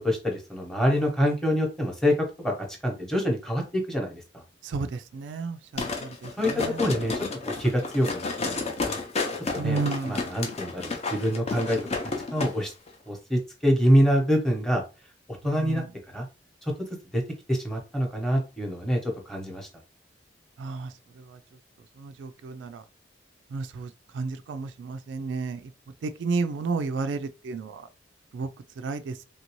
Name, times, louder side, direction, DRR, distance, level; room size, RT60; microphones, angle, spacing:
voice 1, 0.0-2.5 2.8-4.4 6.4-6.5 6.8-7.2 7.6-9.0 9.5-9.8 10.1-11.8 12.3-12.7 13.1-14.8 15.4-15.8 16.1-16.3 16.6-16.7 17.1-17.2 17.5-19.7, equal, 5° left, 0.9 m, -25 dB
voice 2, 4.6-6.8 9.5-10.3 15.5-15.9 20.6-20.9 21.3-21.4 22.0-22.8 23.5-25.7 26.0-27.9 28.3-28.5 28.8-29.2, right 4 dB, 80° right, 0.3 m, -32 dB
sound 1, 5.8-12.5 12.9-13.0, left 3 dB, 35° left, 0.6 m, -31 dB
3.3 x 2.6 x 3.0 m
head